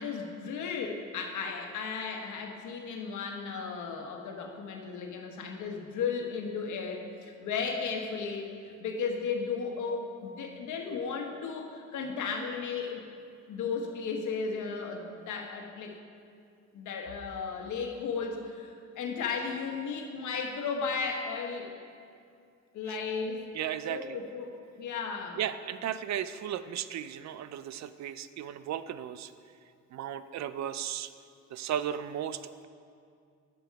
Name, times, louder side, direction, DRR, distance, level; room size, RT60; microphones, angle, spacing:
voice 1, 0.0-13.0 13.5-16.0 16.7-21.7 22.7-23.4 23.9-25.4, left 5 dB, 75° left, 2 dB, 1.3 m, -35 dB
voice 2, 23.5-24.2 25.4-29.3 29.9-31.1 31.5-32.7, right 10 dB, 65° right, 13 dB, 0.5 m, -35 dB
11.5 x 6.3 x 4.6 m, 2.3 s
cardioid pair, 90°, 30 cm